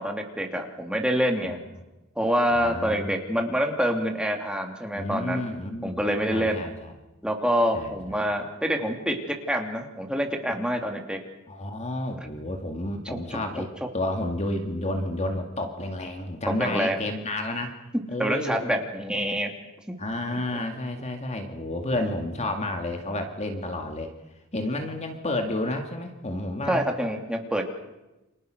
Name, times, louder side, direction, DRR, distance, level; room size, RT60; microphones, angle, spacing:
voice 1, 0.0-1.6 2.2-5.4 5.8-6.6 7.2-11.2 12.1-12.2 13.0-13.4 16.6-17.0 18.2-19.5 26.7-27.7, equal, 5° right, 3 dB, 3.0 m, -26 dB
voice 2, 2.5-3.2 4.9-6.9 7.7-7.9 11.5-17.8 18.1-18.8 20.0-24.1 24.5-26.9, left 1 dB, 30° left, 5 dB, 2.1 m, -31 dB
29.5 x 27.0 x 6.4 m, 1.0 s
head